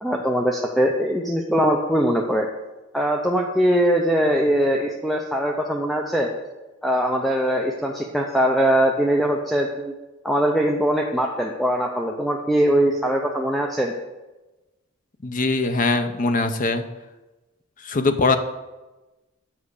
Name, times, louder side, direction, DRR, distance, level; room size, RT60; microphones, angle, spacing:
voice 1, 0.0-2.5 2.9-6.3 6.8-9.9 10.2-13.9, equal, ahead, 0 dB, 0.6 m, -21 dB
voice 2, 15.2-16.8 17.8-18.4, left 3 dB, 40° left, 9 dB, 0.7 m, -21 dB
7.4 x 5.7 x 6.6 m, 1.1 s
head